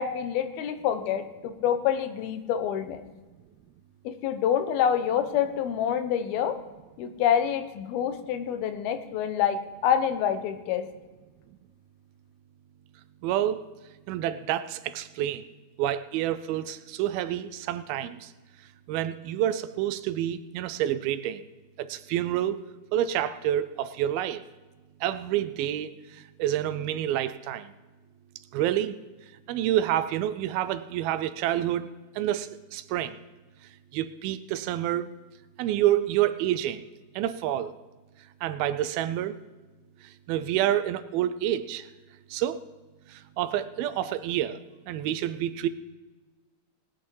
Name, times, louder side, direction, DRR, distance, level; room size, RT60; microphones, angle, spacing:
voice 1, 0.0-3.0 4.0-6.6 7.0-10.8, left 9 dB, 80° left, 9 dB, 2.8 m, -27 dB
voice 2, 13.2-13.7 14.1-15.4 15.8-18.3 18.9-21.4 21.8-22.6 22.9-24.4 25.0-25.9 26.4-27.7 28.5-29.0 29.5-31.9 32.2-33.2 33.9-35.1 35.6-36.8 37.2-37.7 38.4-39.3 40.3-41.9 42.3-42.6 43.4-44.6 44.9-45.7, right 12 dB, 80° right, 13 dB, 2.4 m, -28 dB
19.0 x 8.8 x 4.6 m, 1.2 s
omnidirectional pair, 4.4 m